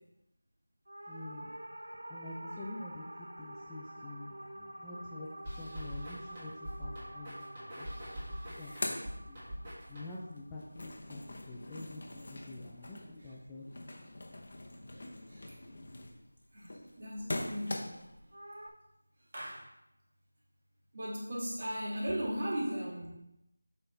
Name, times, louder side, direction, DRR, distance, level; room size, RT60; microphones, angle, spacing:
sound 1, 0.9-11.4 18.3-18.7, right 1 dB, 85° right, 1.0 m, -48 dB
voice 1, 1.1-1.5 2.1-7.5 7.8-8.1 8.6-9.0 9.3-9.4 9.9-11.2 11.5-14.1, left 2 dB, 10° left, -5 dB, 0.5 m, -47 dB
sound 2, 5.5-10.4, equal, 20° right, 1.6 m, -44 dB
sound 3, 8.3-9.9 10.3-18.2, left 1 dB, 45° left, 0.9 m, -43 dB
voice 2, 17.0-18.0 19.3-19.7 20.9-23.1, equal, 35° right, -4 dB, 1.9 m, -37 dB
6.6 x 5.4 x 3.4 m, 0.84 s
figure-of-eight pair, 175°, 0 cm